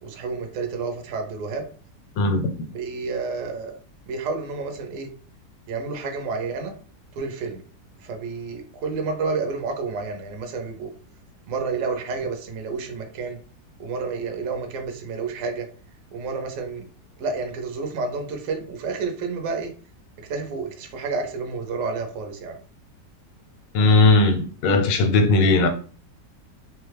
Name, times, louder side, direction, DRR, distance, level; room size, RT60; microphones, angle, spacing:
voice 1, 0.0-1.7 2.7-3.8 4.0-5.1 5.7-6.7 7.1-7.6 8.0-10.9 11.5-13.4 13.8-15.7 16.1-16.9 17.2-19.7 20.2-22.6, right 4 dB, 65° right, 0.9 m, -30 dB
voice 2, 2.2-2.5 23.7-25.7, left 2 dB, 85° left, 1.3 m, -18 dB
2.9 x 2.3 x 3.3 m
omnidirectional pair, 1.9 m